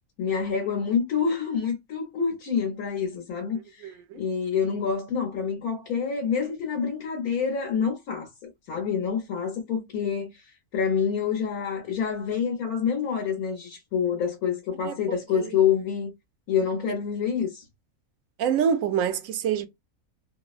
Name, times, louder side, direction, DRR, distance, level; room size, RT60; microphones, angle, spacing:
voice 1, 0.2-3.6 4.1-8.3 8.7-10.3 10.7-16.1 16.5-17.6, left 7 dB, 80° left, 1.5 m, -27 dB
voice 2, 3.8-4.2 14.8-14.9 15.3-15.5 18.4-19.7, right 8 dB, 70° right, 0.9 m, -26 dB
3.2 x 2.0 x 2.4 m
omnidirectional pair, 1.5 m